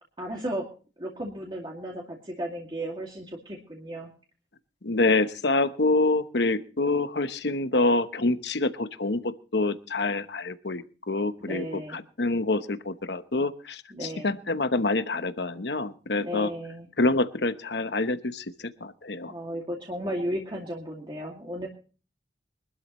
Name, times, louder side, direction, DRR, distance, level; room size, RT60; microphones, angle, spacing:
voice 1, 0.2-0.6 1.0-4.1 11.4-12.0 13.9-14.3 16.2-16.9 19.3-21.7, equal, 25° right, -2 dB, 2.4 m, -34 dB
voice 2, 4.8-11.7 11.9-16.5 17.0-19.3, left 2 dB, 60° left, 10 dB, 1.0 m, -26 dB
24.0 x 12.5 x 3.1 m, 0.37 s
head